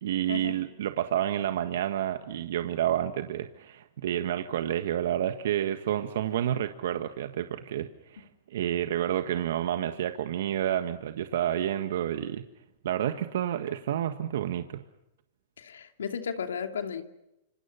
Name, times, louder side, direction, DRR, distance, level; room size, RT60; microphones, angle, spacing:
voice 1, 0.0-12.4 12.8-14.8, right 11 dB, 70° right, 1.5 m, -29 dB
voice 2, 15.6-17.0, left 7 dB, 85° left, 2.7 m, -34 dB
28.0 x 26.5 x 5.7 m
hypercardioid pair, 120°, 0 cm